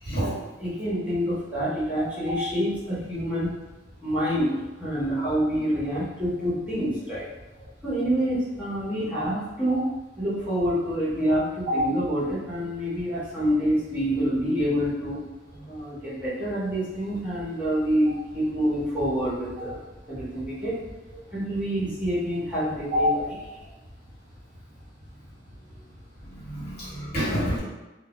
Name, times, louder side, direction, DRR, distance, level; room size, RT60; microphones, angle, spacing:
voice 1, 0.6-3.5 4.0-7.3 7.8-9.9 10.2-15.2 15.7-19.8 20.1-20.7 21.3-23.4, equal, 10° right, -11 dB, 0.7 m, -27 dB
voice 2, 26.5-27.6, equal, 55° left, -10 dB, 1.2 m, -26 dB
2.1 x 2.1 x 2.8 m, 1.1 s
head